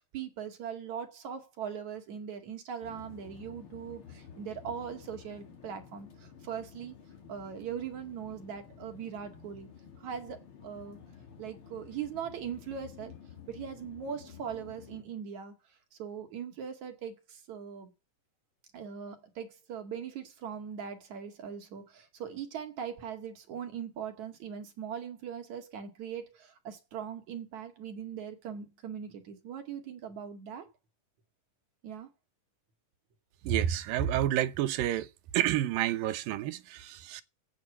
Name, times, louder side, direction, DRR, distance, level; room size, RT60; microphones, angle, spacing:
voice 1, 0.0-6.9 7.3-9.7 10.0-11.0 11.4-13.1 13.5-17.9 18.7-30.7 31.8-32.1, right 8 dB, 60° right, 3.3 m, -40 dB
sound 1, 2.8-15.0, left 7 dB, 40° left, 2.8 m, -52 dB
voice 2, 33.4-35.1 35.3-37.2, right 12 dB, 85° right, 2.7 m, -29 dB
10.5 x 8.8 x 7.3 m
omnidirectional pair, 3.9 m